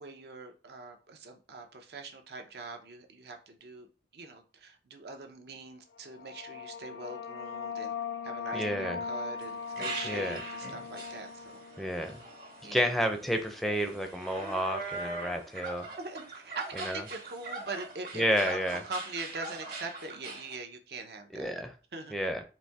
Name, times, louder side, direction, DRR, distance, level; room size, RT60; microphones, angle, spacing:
voice 1, 0.0-3.9 4.1-7.9 8.2-11.6 12.6-12.9 16.0-18.6 18.8-21.5 21.9-22.1, right 3 dB, 70° right, 4 dB, 0.7 m, -42 dB
sound 1, 6.0-13.3, left 5 dB, 75° left, 0.4 m, -40 dB
voice 2, 8.5-9.0 10.0-10.4 11.8-12.2 12.7-15.9 16.8-17.0 18.1-18.8 21.3-21.7 22.1-22.4, equal, ahead, 4 dB, 0.5 m, -30 dB
sound 2, 9.4-20.6, right 3 dB, 50° right, 1.3 m, -42 dB
4.2 x 2.7 x 3.4 m, 0.34 s
head